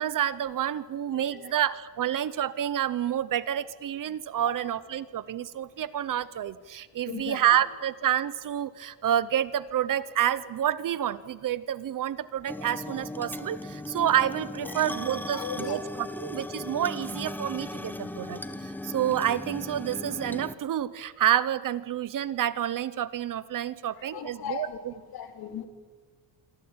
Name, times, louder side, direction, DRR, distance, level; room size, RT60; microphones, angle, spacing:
voice 1, 0.0-24.9, right 10 dB, 45° right, 17 dB, 0.8 m, -29 dB
voice 2, 1.1-1.5 4.4-4.7 7.0-7.6 14.6-14.9 15.2-15.9 24.0-25.7, left 9 dB, 55° left, 6 dB, 3.2 m, -39 dB
sound 1, 12.5-20.5, left 1 dB, 5° left, 0.9 m, -37 dB
27.5 x 24.0 x 8.9 m, 1.4 s
cardioid pair, 175°, 45 cm